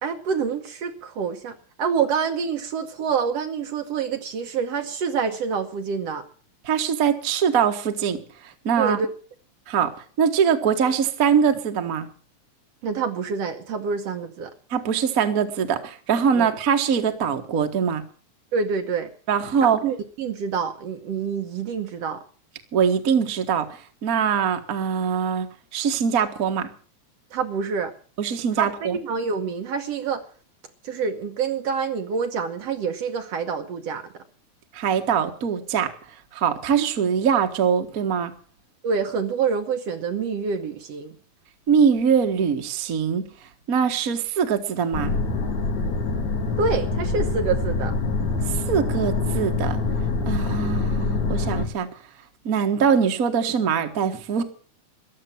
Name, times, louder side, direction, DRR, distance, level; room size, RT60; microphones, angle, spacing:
voice 1, 0.0-6.2 8.8-9.1 12.8-14.5 16.4-16.5 18.5-19.1 19.6-22.2 27.3-27.9 28.6-30.2 30.8-34.2 38.8-41.1 45.8-45.9 46.6-47.9, right 5 dB, 65° right, 6 dB, 2.0 m, -27 dB
voice 2, 6.6-9.0 9.7-9.9 10.2-12.1 14.7-18.0 19.3-19.8 22.7-26.7 28.2-29.0 34.7-35.9 36.3-38.3 41.7-43.3 43.7-45.1 48.5-49.8 50.3-51.9 52.4-54.4, right 7 dB, 40° right, 5 dB, 1.5 m, -22 dB
sound 1, 44.9-51.7, left 3 dB, 75° left, 3.9 m, -25 dB
14.5 x 11.0 x 7.6 m, 0.42 s
omnidirectional pair, 3.4 m